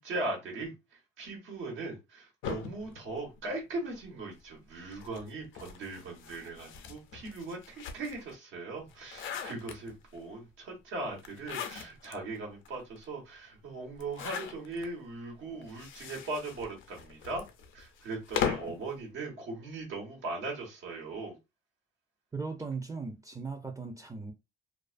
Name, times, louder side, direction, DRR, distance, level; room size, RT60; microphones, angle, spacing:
voice 1, 0.0-17.4 17.7-21.3, right 2 dB, 85° right, 1.3 m, -39 dB
sound 1, 2.4-4.0 4.9-8.3 8.8-10.2 11.2-12.2 12.6-12.7 13.0-13.1 13.9-14.9 15.6-18.8, left 7 dB, 85° left, 0.5 m, -39 dB
voice 2, 22.3-24.3, right 4 dB, 15° right, 0.4 m, -38 dB
2.3 x 2.3 x 2.4 m
cardioid pair, 90°, 20 cm